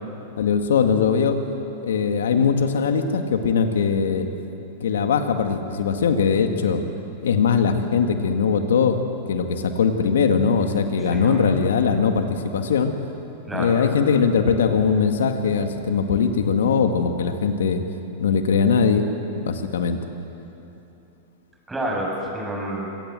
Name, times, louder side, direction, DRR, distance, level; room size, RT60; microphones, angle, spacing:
voice 1, 0.4-1.3 1.8-4.3 4.8-6.8 7.2-9.0 9.3-12.9 13.5-17.8 18.2-19.0 19.4-20.0, left 6 dB, 80° left, 6 dB, 2.0 m, -20 dB
voice 2, 11.0-11.4 13.5-13.7 21.7-22.9, right 1 dB, 10° right, -2 dB, 7.6 m, -29 dB
25.5 x 17.5 x 7.7 m, 2.9 s
hypercardioid pair, 115°, 0 cm